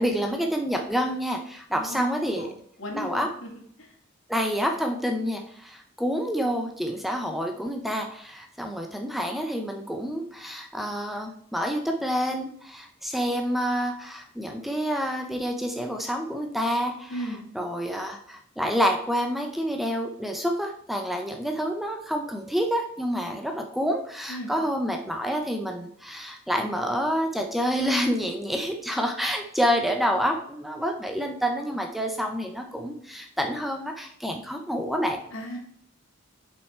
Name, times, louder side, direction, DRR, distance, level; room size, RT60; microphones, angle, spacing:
voice 1, 0.0-2.5 2.9-3.3 4.3-17.2 17.5-35.2, equal, ahead, 3 dB, 0.6 m, -28 dB
voice 2, 1.7-2.5 2.8-3.5 3.8-3.9 17.1-17.4 24.3-24.5 35.3-35.6, equal, 75° left, 1 dB, 2.1 m, -36 dB
6.7 x 5.7 x 4.4 m, 0.64 s
head